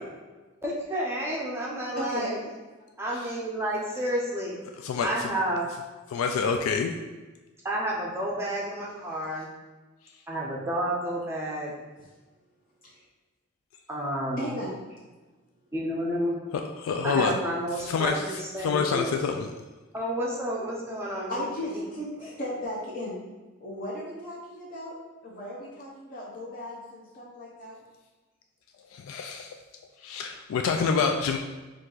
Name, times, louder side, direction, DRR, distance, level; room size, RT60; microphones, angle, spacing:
voice 1, 0.6-2.4 3.0-4.6 5.0-5.7 7.6-9.5 10.3-11.7 13.9-14.5 15.7-16.4 17.0-19.1 19.9-21.3 22.2-22.3, right 1 dB, 10° right, -4 dB, 0.5 m, -30 dB
voice 2, 1.9-2.3 9.3-9.4 12.8-13.0 14.4-15.0 21.3-23.2 23.6-24.9 25.2-27.8, left 1 dB, 45° left, -6 dB, 0.8 m, -36 dB
voice 3, 4.8-5.3 6.1-6.9 16.8-17.4 17.9-19.5 28.9-29.6 30.0-31.4, left 5 dB, 90° left, 5 dB, 0.3 m, -27 dB
4.6 x 2.5 x 3.8 m, 1.2 s
head